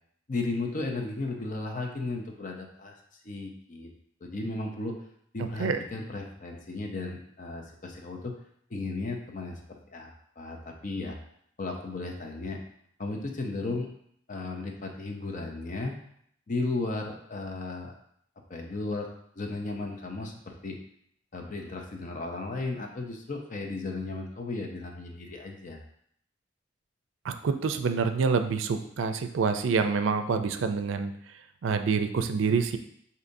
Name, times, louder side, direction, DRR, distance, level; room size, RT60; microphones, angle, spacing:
voice 1, 0.3-3.0 3.2-3.9 4.2-5.0 5.3-8.3 8.7-10.1 10.4-11.2 11.6-12.6 13.0-13.9 14.3-15.9 16.5-17.9 18.5-19.1 19.4-20.8 21.3-25.8, left 3 dB, 40° left, 2 dB, 0.6 m, -35 dB
voice 2, 27.2-31.1 31.6-32.8, right 5 dB, 80° right, 8 dB, 0.4 m, -27 dB
6.5 x 2.7 x 2.6 m, 0.68 s
head